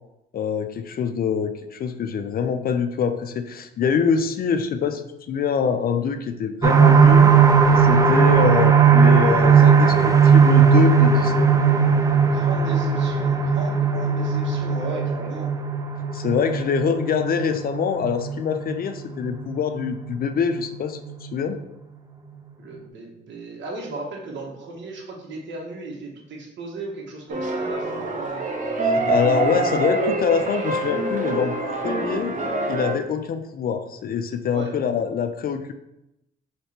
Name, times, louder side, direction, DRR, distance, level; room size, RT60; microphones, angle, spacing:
voice 1, 0.3-7.3 7.8-11.5 16.1-21.6 28.9-32.4 32.7-35.7, left 6 dB, 50° left, 8 dB, 0.4 m, -25 dB
sound 1, 6.6-20.1 20.6-20.7 21.0-21.1, right 6 dB, 15° right, 0.4 m, -17 dB
voice 2, 12.2-15.5 22.6-28.4 34.5-34.7, right 2 dB, 70° right, -1 dB, 1.2 m, -36 dB
sound 2, 27.3-32.9, right 2 dB, 40° right, 0.8 m, -25 dB
3.3 x 3.0 x 4.3 m, 0.86 s
cardioid pair, 90°, 20 cm